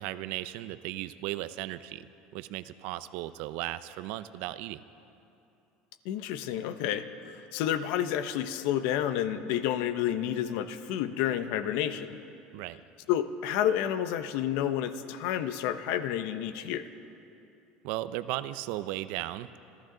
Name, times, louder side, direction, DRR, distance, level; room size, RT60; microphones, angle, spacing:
voice 1, 0.0-4.8 12.5-12.8 17.8-19.5, right 15 dB, 70° right, 14 dB, 0.5 m, -36 dB
voice 2, 6.0-12.2 13.1-16.9, left 10 dB, 75° left, 11 dB, 0.8 m, -30 dB
28.0 x 12.5 x 3.9 m, 2.8 s
supercardioid pair, 120°, 3 cm